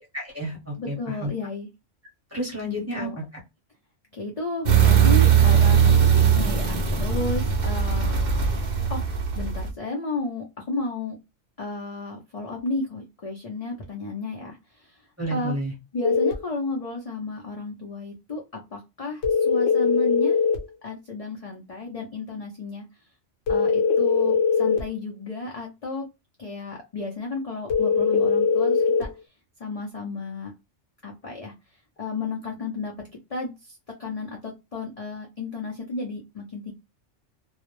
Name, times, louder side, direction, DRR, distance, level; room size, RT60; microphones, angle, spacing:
voice 1, 0.1-1.3 2.3-3.2 15.2-15.7, equal, 15° right, -5 dB, 0.9 m, -30 dB
voice 2, 0.8-1.7 3.0-3.2 4.1-8.2 8.9-11.2 11.6-15.5 15.9-20.4 20.8-22.9 23.5-26.1 26.4-29.1 29.6-30.5 31.0-31.5 32.0-32.9 33.3-36.7, left 3 dB, 50° left, -1 dB, 0.5 m, -33 dB
sound 1, 4.7-9.7, right 8 dB, 55° right, 0.5 m, -19 dB
sound 2, 16.0-16.4 19.2-20.6 23.5-24.9 27.7-29.1, left 5 dB, 65° left, 1.0 m, -21 dB
2.3 x 2.0 x 2.9 m, 0.24 s
omnidirectional pair, 1.3 m